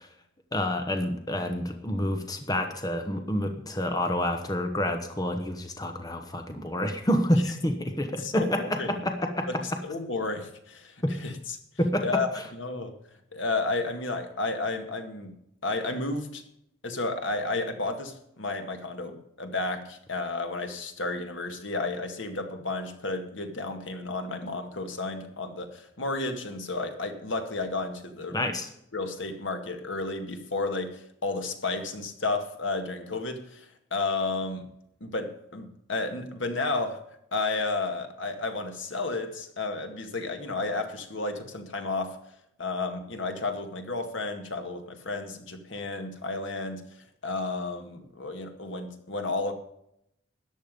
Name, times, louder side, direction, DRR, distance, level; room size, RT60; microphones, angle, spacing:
voice 1, 0.5-9.5 11.0-11.1 11.8-12.2 28.3-28.7, left 1 dB, 20° left, 5 dB, 1.1 m, -28 dB
voice 2, 8.2-8.9 9.5-11.6 12.0-13.0 13.3-15.3 15.6-16.4 16.8-28.4 28.9-34.7 35.0-37.0 37.3-42.2 42.6-46.8 47.2-49.5, left 3 dB, 70° left, 6 dB, 1.9 m, -32 dB
14.0 x 10.0 x 5.3 m, 0.76 s
head